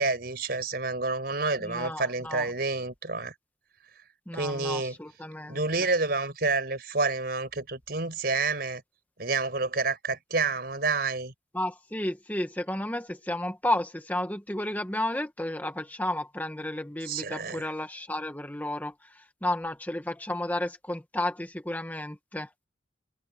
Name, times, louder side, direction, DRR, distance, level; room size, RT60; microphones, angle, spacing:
voice 1, 0.0-3.3 4.3-5.0 5.5-8.8 9.2-11.3 17.0-17.7, right 3 dB, 55° right, 5.0 m, -29 dB
voice 2, 1.6-2.5 4.3-5.6 11.5-18.9 19.4-22.5, left 1 dB, 10° left, 1.4 m, -32 dB
head